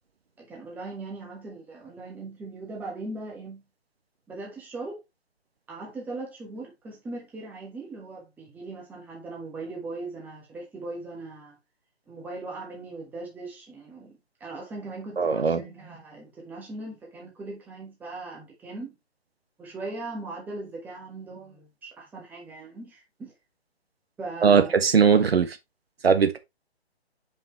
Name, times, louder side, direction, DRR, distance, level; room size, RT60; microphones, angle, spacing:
voice 1, 0.4-3.6 4.3-5.0 5.7-11.6 12.1-19.0 19.6-23.3 24.2-24.7, right 2 dB, 5° right, 1.4 m, -39 dB
voice 2, 15.2-15.6 24.4-25.6 26.0-26.4, right 6 dB, 65° right, 1.4 m, -19 dB
7.1 x 5.4 x 3.1 m
figure-of-eight pair, 150°, 33 cm